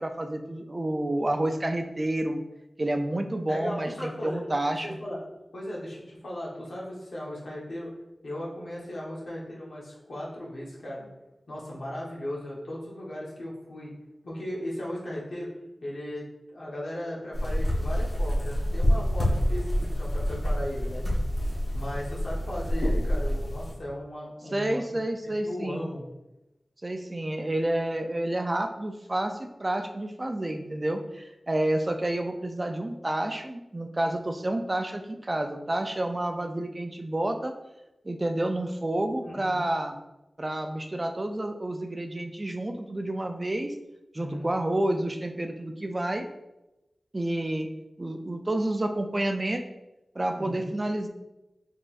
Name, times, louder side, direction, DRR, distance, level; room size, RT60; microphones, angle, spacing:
voice 1, 0.0-2.4 2.8-5.0 24.5-25.8 26.8-37.5 38.0-40.0 40.4-43.7 44.1-46.3 47.1-47.7 48.0-49.6 50.2-51.1, right 1 dB, 30° right, 5 dB, 0.4 m, -29 dB
voice 2, 3.5-4.5 4.8-5.2 5.5-7.9 8.2-11.1 11.5-13.9 14.2-15.5 15.8-21.0 21.7-24.9 25.2-26.0 39.3-39.6 44.2-44.5 50.3-50.6, left 1 dB, 90° left, -5 dB, 1.1 m, -37 dB
sound 1, 17.3-23.7, equal, 60° left, 1.1 m, -27 dB
3.9 x 3.7 x 2.5 m, 0.97 s
wide cardioid pair, 80°, 0 cm